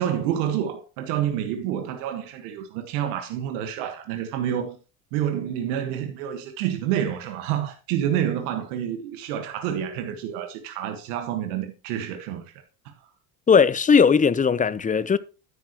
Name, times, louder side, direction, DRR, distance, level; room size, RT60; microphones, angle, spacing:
voice 1, 0.0-4.8 5.1-12.5 12.8-12.9, right 10 dB, 75° right, 1.5 m, -28 dB
voice 2, 13.5-15.2, left 6 dB, 15° left, 0.7 m, -18 dB
9.9 x 8.9 x 2.9 m
hypercardioid pair, 75°, 46 cm